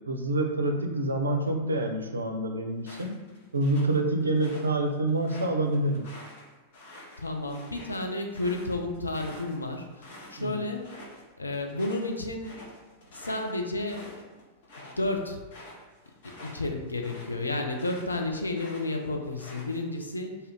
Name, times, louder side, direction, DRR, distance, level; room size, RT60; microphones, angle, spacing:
voice 1, 0.1-3.2 3.5-6.1 10.4-10.6, right 2 dB, 75° right, 4 dB, 0.4 m, -27 dB
sound 1, 2.8-4.7 5.1-10.4 10.7-11.2 11.5-18.2 18.5-20.0, left 1 dB, 55° left, 0.9 m, -48 dB
voice 2, 7.2-10.9 11.4-12.6 13.1-14.2 14.8-15.4 16.2-20.4, left 2 dB, 80° left, 3 dB, 0.4 m, -32 dB
2.7 x 2.4 x 3.3 m, 1.3 s
figure-of-eight pair, 90°, 0 cm